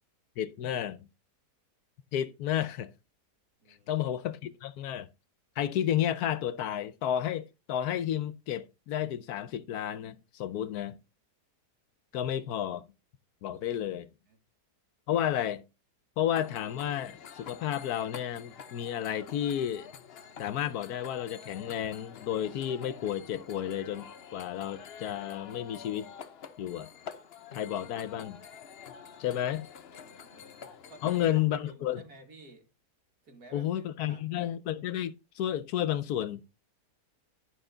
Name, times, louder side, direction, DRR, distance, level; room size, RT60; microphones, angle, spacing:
voice 1, 0.4-1.0 2.1-2.9 3.9-5.1 5.6-11.0 12.1-12.8 13.4-14.1 15.1-15.6 16.2-19.9 20.4-26.1 26.6-26.9 27.5-28.4 29.2-29.7 31.0-32.0 33.5-36.4, left 11 dB, 70° left, 1.1 m, -32 dB
voice 2, 3.6-3.9 14.3-14.4 29.9-32.7 33.2-34.5, right 2 dB, 65° right, 2.7 m, -54 dB
sound 1, 16.3-31.3, left 7 dB, 50° left, 0.7 m, -48 dB
11.0 x 5.9 x 3.8 m
omnidirectional pair, 1.7 m